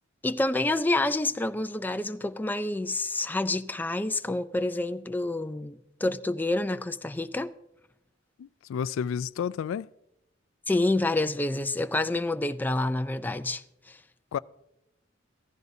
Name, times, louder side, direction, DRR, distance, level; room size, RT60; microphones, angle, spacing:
voice 1, 0.2-7.5 10.7-14.0, left 2 dB, 10° left, 0.4 m, -28 dB
voice 2, 8.4-9.9 14.3-14.4, left 7 dB, 90° left, 0.3 m, -31 dB
15.0 x 14.5 x 2.7 m
head